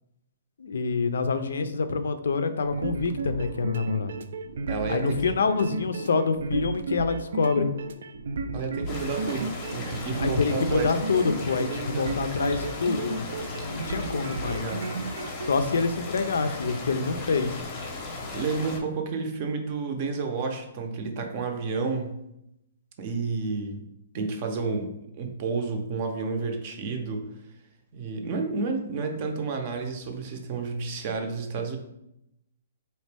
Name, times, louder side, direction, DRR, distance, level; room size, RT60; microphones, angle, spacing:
voice 1, 0.6-4.2 4.9-7.7 10.2-14.7 15.5-17.6, left 4 dB, 80° left, 10 dB, 0.4 m, -26 dB
sound 1, 2.6-15.5, right 3 dB, 80° right, 0.4 m, -34 dB
voice 2, 4.7-5.4 8.5-11.0 11.6-12.3 14.4-14.9 18.3-22.2 23.0-23.8 24.1-27.3 27.9-31.8, right 4 dB, 35° right, 4 dB, 0.6 m, -31 dB
sound 2, 8.9-18.8, left 3 dB, 25° left, 0.7 m, -37 dB
4.1 x 2.9 x 3.3 m, 0.84 s
hypercardioid pair, 165°, 0 cm